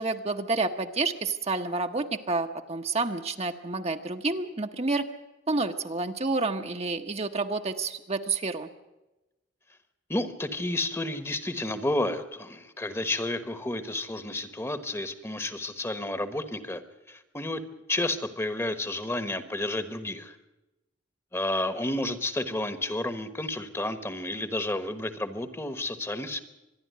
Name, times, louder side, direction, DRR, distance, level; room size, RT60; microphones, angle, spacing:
voice 1, 0.0-5.1 5.5-8.7, right 3 dB, 35° right, 5 dB, 1.0 m, -29 dB
voice 2, 10.1-16.8 17.1-17.6 17.9-20.4 21.3-26.4, left 1 dB, 15° left, 12 dB, 1.2 m, -31 dB
25.5 x 11.0 x 9.4 m, 1.0 s
head